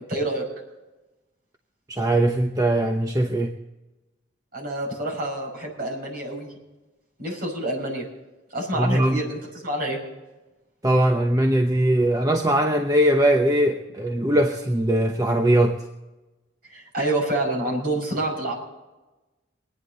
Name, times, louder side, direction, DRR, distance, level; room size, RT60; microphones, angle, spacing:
voice 1, 0.1-0.4 4.5-6.5 7.2-8.1 8.5-10.0 16.7-18.5, right 1 dB, 50° right, -2 dB, 5.8 m, -27 dB
voice 2, 1.9-3.5 8.8-9.2 10.8-15.8, right 1 dB, 20° right, 3 dB, 0.9 m, -20 dB
24.0 x 10.0 x 3.9 m, 1.1 s
head